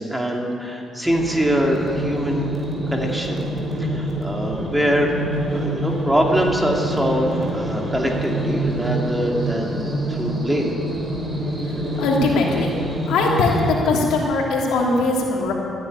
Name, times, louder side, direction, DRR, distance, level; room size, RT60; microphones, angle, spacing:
voice 1, 0.0-2.5 2.9-3.5 3.8-5.1 5.5-10.7, equal, 10° right, 0 dB, 2.6 m, -23 dB
sound 1, 1.0-13.7, right 1 dB, 25° right, 3.6 m, -26 dB
voice 2, 12.0-12.7 13.1-15.5, left 3 dB, 85° left, -2 dB, 3.0 m, -20 dB
14.5 x 10.0 x 9.7 m, 2.4 s
cardioid pair, 90°, 0 cm